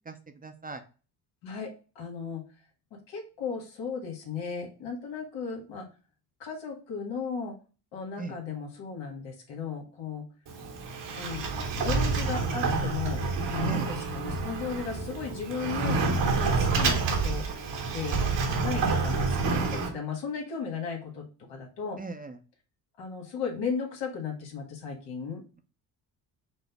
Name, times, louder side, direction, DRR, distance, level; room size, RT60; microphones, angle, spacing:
voice 1, 0.1-0.8 8.2-8.3 13.6-13.9 22.0-22.4, right 3 dB, 20° right, 7 dB, 0.6 m, -38 dB
voice 2, 1.4-2.4 2.9-5.9 6.4-7.6 7.9-10.3 11.2-11.5 11.8-16.0 16.3-17.4 17.9-18.2 18.6-22.0 23.0-25.4, left 5 dB, 85° left, 0 dB, 1.7 m, -36 dB
Sliding door, 10.5-19.9, right 4 dB, 70° right, 1.3 m, -28 dB
5.1 x 2.0 x 4.7 m, 0.35 s
supercardioid pair, 70°, 44 cm